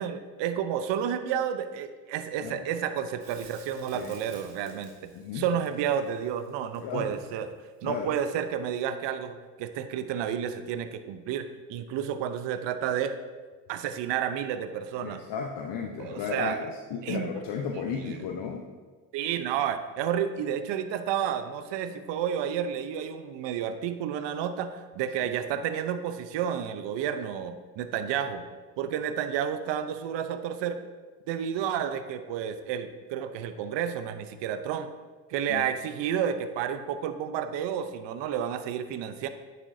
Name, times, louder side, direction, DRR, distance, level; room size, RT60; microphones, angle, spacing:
voice 1, 0.0-7.6 7.8-13.1 13.7-15.2 16.0-16.6 17.0-17.4 17.7-18.2 19.1-28.4 28.8-30.9 31.3-34.9 35.3-39.3, right 8 dB, 65° right, 10 dB, 0.8 m, -31 dB
Crackle, 3.2-8.3 11.1-11.2, right 4 dB, 85° right, 2.5 m, -55 dB
voice 2, 6.8-7.1 7.8-8.1 15.0-18.7 25.2-25.3 35.5-35.6, left 6 dB, 60° left, 1 dB, 0.9 m, -34 dB
9.0 x 7.5 x 2.7 m, 1.4 s
supercardioid pair, 70°, 46 cm